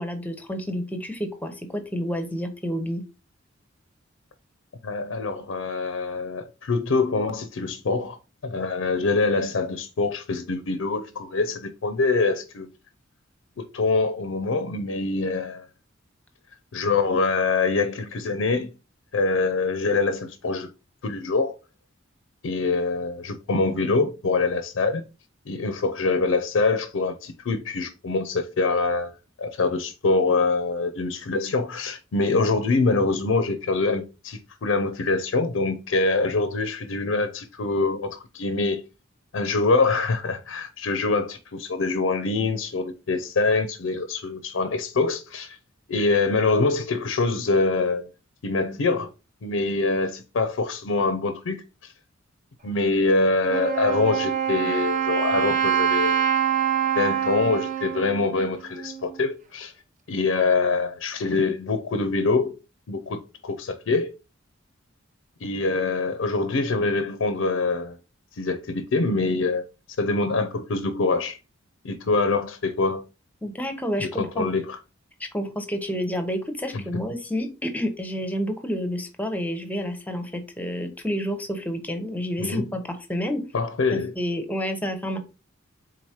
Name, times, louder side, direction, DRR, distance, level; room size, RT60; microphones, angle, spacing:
voice 1, 0.0-3.0 73.4-74.5 75.2-83.4 83.9-85.2, equal, 10° left, 0.7 m, -29 dB
voice 2, 4.8-8.2 8.4-12.7 13.6-15.6 16.7-18.7 19.1-20.7 21.0-21.5 22.4-25.0 25.5-38.8 39.3-45.6 45.9-48.1 48.4-49.1 49.4-51.9 52.6-56.2 57.0-59.7 60.1-62.5 62.9-64.1 65.4-68.0 68.3-69.6 70.0-71.4 71.8-73.0 74.0-74.8 76.7-77.0 82.4-82.7 83.5-84.1, left 3 dB, 75° left, 0.5 m, -24 dB
Wind instrument woodwind instrument, 53.5-59.2, right 9 dB, 40° right, 0.6 m, -25 dB
4.6 x 3.9 x 2.8 m
head